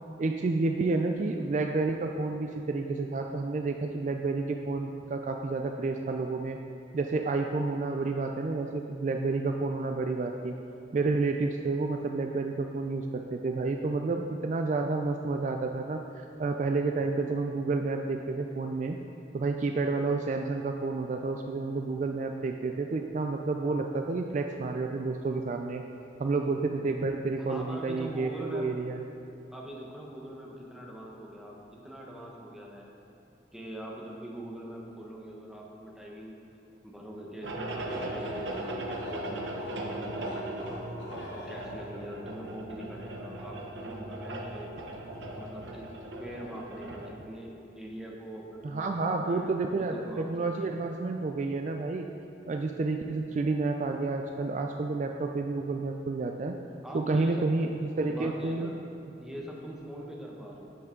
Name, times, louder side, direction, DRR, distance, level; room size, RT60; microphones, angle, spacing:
voice 1, 0.2-6.6 6.9-10.5 10.9-19.0 19.3-25.8 26.2-29.0 48.6-52.1 52.5-56.6 56.9-57.7 58.0-58.7, right 3 dB, 45° right, 4 dB, 0.3 m, -30 dB
voice 2, 27.4-28.7 29.5-32.9 33.5-36.4 36.8-40.9 41.3-44.7 45.3-45.9 46.2-50.3 50.6-50.7 56.8-57.5 58.1-58.7 59.2-60.7, right 1 dB, 5° right, -2 dB, 0.9 m, -43 dB
sound 1, 37.4-47.1, right 1 dB, 90° right, 0.9 m, -38 dB
sound 2, 37.7-42.1, left 1 dB, 85° left, 1.3 m, -44 dB
9.7 x 7.0 x 3.7 m, 2.7 s
head